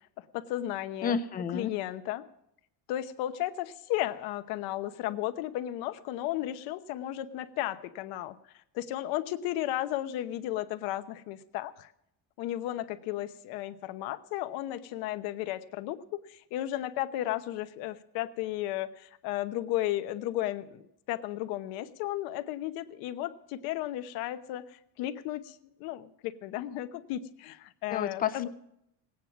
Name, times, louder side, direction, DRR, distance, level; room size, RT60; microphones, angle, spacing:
voice 1, 0.3-1.2 1.5-2.2 2.9-8.4 8.7-11.9 12.4-28.5, left 14 dB, 80° left, 11 dB, 1.0 m, -34 dB
voice 2, 1.0-1.7 27.9-28.5, left 7 dB, 25° left, 12 dB, 0.5 m, -31 dB
18.0 x 9.1 x 5.9 m, 0.79 s
cardioid pair, 170°, 37 cm